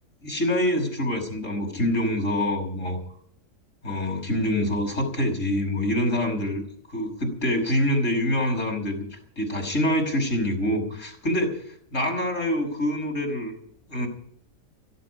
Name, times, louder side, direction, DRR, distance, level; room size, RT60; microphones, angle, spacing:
voice 1, 0.2-3.0 3.8-6.6 6.9-11.6 11.9-13.5 13.9-14.1, left 1 dB, 65° left, 2 dB, 5.8 m, -25 dB
17.0 x 15.5 x 5.0 m, 0.64 s
omnidirectional pair, 1.4 m